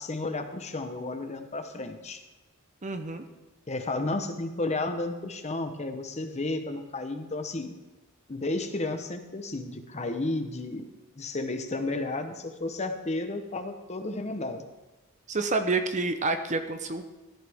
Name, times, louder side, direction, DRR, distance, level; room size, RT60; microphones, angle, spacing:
voice 1, 0.0-2.2 3.7-7.7 8.3-10.9 11.1-14.6, left 2 dB, 30° left, 7 dB, 0.9 m, -32 dB
voice 2, 2.8-3.2 15.3-17.1, right 3 dB, 35° right, 8 dB, 0.8 m, -28 dB
14.5 x 12.0 x 3.6 m, 1.1 s
head